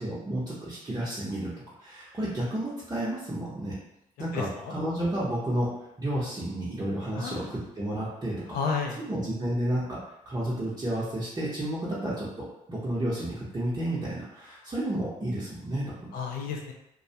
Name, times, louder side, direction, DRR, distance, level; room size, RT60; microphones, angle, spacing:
voice 1, 0.0-1.5 1.8-3.7 4.2-5.7 6.0-8.6 9.1-10.0 10.3-16.1, right 1 dB, 25° right, -9 dB, 0.7 m, -31 dB
voice 2, 4.3-4.7 7.1-7.5 8.5-9.1 16.1-16.7, left 5 dB, 75° left, 2 dB, 0.5 m, -32 dB
2.3 x 2.1 x 2.7 m, 0.84 s
supercardioid pair, 65°, 15 cm